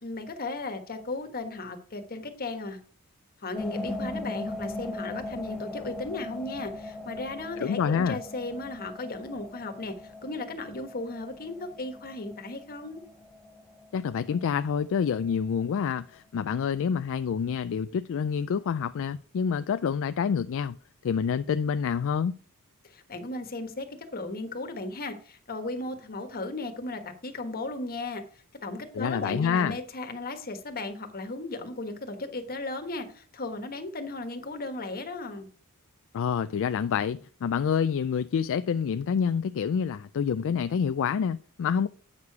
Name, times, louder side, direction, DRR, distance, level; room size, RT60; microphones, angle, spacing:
voice 1, 0.0-2.8 3.4-9.9 10.2-13.0 22.8-23.9 24.1-28.2 28.6-35.5, left 2 dB, 45° left, 1.4 m, -36 dB
sound 1, 3.5-15.3, left 2 dB, ahead, 2.0 m, -39 dB
voice 2, 7.6-8.2 13.9-20.8 21.0-22.4 28.9-29.8 36.1-41.9, left 7 dB, 60° left, 0.3 m, -27 dB
8.7 x 6.6 x 4.7 m
head